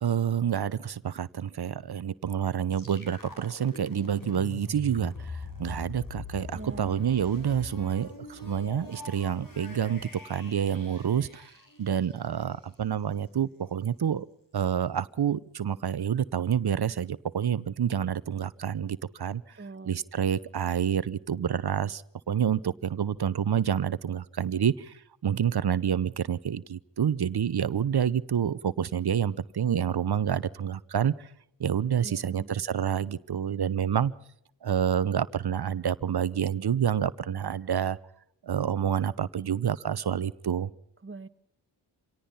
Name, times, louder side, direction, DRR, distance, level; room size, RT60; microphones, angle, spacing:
voice 1, 0.0-11.5 11.8-14.3 14.5-19.6 19.8-31.3 31.6-34.1 34.6-38.0 38.4-40.7, right 8 dB, 50° right, 17 dB, 0.9 m, -28 dB
sound 1, 2.7-12.5, left 3 dB, 40° left, 4.6 m, -43 dB
voice 2, 6.5-7.0 19.6-19.9 32.0-32.5 41.0-41.3, right 3 dB, 25° right, 13 dB, 1.4 m, -42 dB
26.0 x 18.0 x 5.6 m, 0.70 s
cardioid pair, 50°, 48 cm